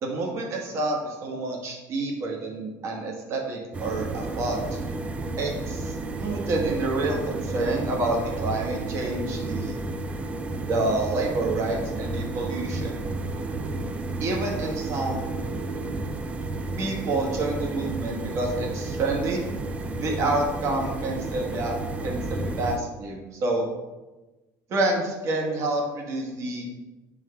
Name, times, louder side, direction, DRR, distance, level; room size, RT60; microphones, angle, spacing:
voice 1, 0.0-4.6 5.4-9.8 10.7-13.0 14.2-15.3 16.8-19.4 20.0-23.7 24.7-26.7, right 2 dB, 40° right, 0 dB, 1.3 m, -28 dB
sound 1, 3.7-22.8, right 2 dB, 15° right, 0.3 m, -32 dB
7.4 x 3.2 x 5.6 m, 1.1 s
cardioid pair, 165°, 7 cm